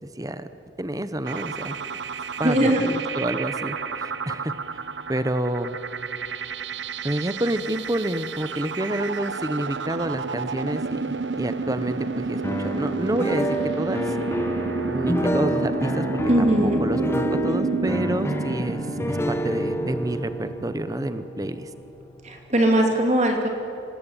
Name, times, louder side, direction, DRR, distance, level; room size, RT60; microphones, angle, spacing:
voice 1, 0.0-0.5 0.8-1.8 2.4-4.5 5.1-5.8 7.0-14.0 14.8-16.1 16.4-18.8 19.1-21.7, right 1 dB, 20° right, 11 dB, 0.9 m, -28 dB
sound 1, 1.2-20.7, right 4 dB, 70° right, 0.8 m, -31 dB
voice 2, 2.4-2.8 16.3-16.8 22.2-23.5, right 1 dB, 35° right, 2 dB, 2.8 m, -20 dB
sound 2, 12.4-22.4, equal, 15° left, 1.2 m, -28 dB
25.5 x 19.0 x 9.1 m, 3.0 s
head